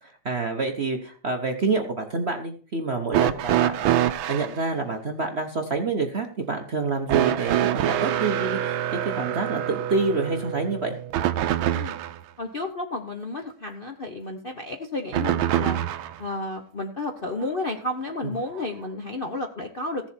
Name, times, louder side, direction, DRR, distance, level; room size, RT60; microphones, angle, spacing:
voice 1, 0.2-8.8 9.2-10.9 18.2-18.3, right 3 dB, 45° right, 4 dB, 0.9 m, -27 dB
sound 1, 3.1-4.6 7.1-12.2 15.1-16.2 17.4-17.5 18.6-18.7, right 12 dB, 80° right, 1.5 m, -25 dB
voice 2, 12.4-15.8 16.2-20.1, left 2 dB, 45° left, 2 dB, 0.7 m, -32 dB
15.5 x 7.3 x 4.4 m, 0.42 s
omnidirectional pair, 2.2 m